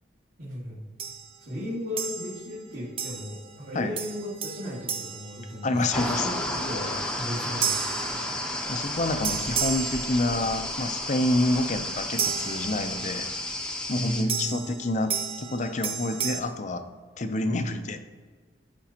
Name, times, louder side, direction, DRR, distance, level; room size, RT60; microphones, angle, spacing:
voice 1, 0.4-0.8 1.4-8.0 13.9-14.6 17.3-17.8, equal, 50° right, -10 dB, 2.4 m, -35 dB
sound 1, 1.0-1.4 2.0-2.6 3.0-3.5 4.0-6.1 7.6-8.8 9.2-10.7 12.2-13.2 14.3-16.4, right 7 dB, 30° right, 0.6 m, -33 dB
voice 2, 5.6-6.3 8.7-13.3 13.9-16.9 17.2-18.0, left 2 dB, 40° left, 8 dB, 0.6 m, -28 dB
sound 2, 5.9-14.2, left 1 dB, 5° left, 0.8 m, -32 dB
14.5 x 5.2 x 2.9 m, 1.5 s
head